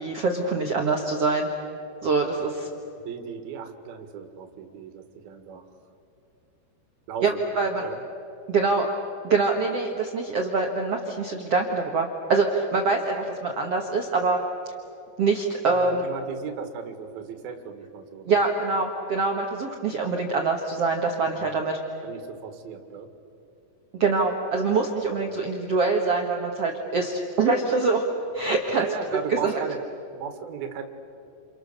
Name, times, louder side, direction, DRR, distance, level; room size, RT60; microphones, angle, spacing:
voice 1, 0.0-1.5 2.0-2.7 7.2-7.8 8.5-8.9 9.2-14.4 15.2-16.0 18.3-21.8 24.0-28.0 28.3-28.8 29.4-29.5, right 4 dB, 85° right, 1 dB, 1.3 m, -24 dB
voice 2, 3.0-5.6 7.1-7.4 7.8-8.0 15.7-18.4 21.4-21.6 22.0-23.1 25.0-25.4 28.8-29.8 30.1-30.8, right 7 dB, 60° right, 6 dB, 3.3 m, -36 dB
29.0 x 29.0 x 6.7 m, 2.7 s
omnidirectional pair, 5.4 m